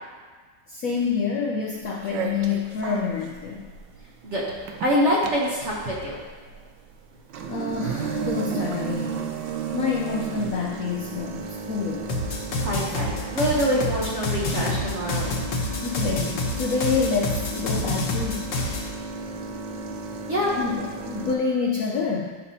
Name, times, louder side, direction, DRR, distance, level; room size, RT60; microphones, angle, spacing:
voice 1, 0.7-3.7 7.5-9.2 9.7-12.1 15.8-18.5 20.6-22.3, left 5 dB, 80° left, 0 dB, 0.7 m, -27 dB
sound 1, 1.8-21.4, right 5 dB, 70° right, 1.2 m, -34 dB
voice 2, 4.8-6.2 12.6-15.3 20.3-20.5, equal, 45° right, -5 dB, 1.0 m, -25 dB
sound 2, 12.1-18.9, left 2 dB, 65° left, 1.5 m, -28 dB
11.0 x 5.5 x 2.8 m, 1.4 s
omnidirectional pair, 2.2 m